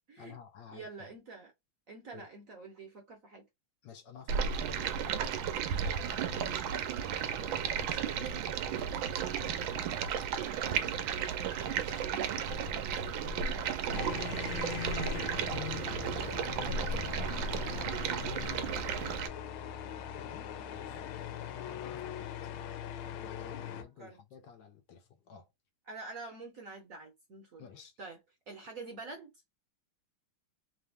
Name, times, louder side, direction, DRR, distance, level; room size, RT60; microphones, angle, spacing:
voice 1, 0.2-1.1 2.1-2.3 3.8-4.9 6.2-6.7 7.4-9.4 10.6-11.1 11.6-14.4 14.7-18.4 20.1-21.1 21.7-22.5 23.2-25.5 27.6-27.9 28.6-28.7, left 8 dB, 70° left, 1.3 m, -51 dB
voice 2, 0.7-1.5 1.9-3.5 20.7-20.8 23.8-24.2 25.9-27.6 28.0-28.2 28.5-29.3, right 3 dB, 55° right, 1.0 m, -46 dB
Stream, 4.3-19.3, right 7 dB, 75° right, 1.3 m, -34 dB
sound 1, 13.9-23.8, left 9 dB, 90° left, 1.5 m, -41 dB
3.5 x 2.7 x 3.4 m
omnidirectional pair, 2.2 m